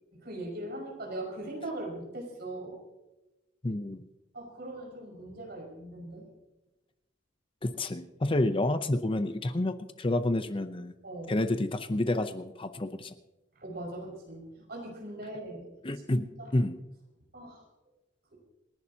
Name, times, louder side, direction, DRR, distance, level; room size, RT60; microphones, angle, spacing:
voice 1, 0.2-2.8 4.3-6.3 11.0-11.3 13.6-15.7 16.1-16.5 17.3-17.6, right 1 dB, 55° right, -1 dB, 5.6 m, -40 dB
voice 2, 3.6-4.1 7.6-10.9 11.3-13.1 15.8-16.3 16.5-16.8, left 1 dB, 30° left, 10 dB, 0.7 m, -29 dB
27.5 x 11.5 x 2.9 m, 0.98 s
head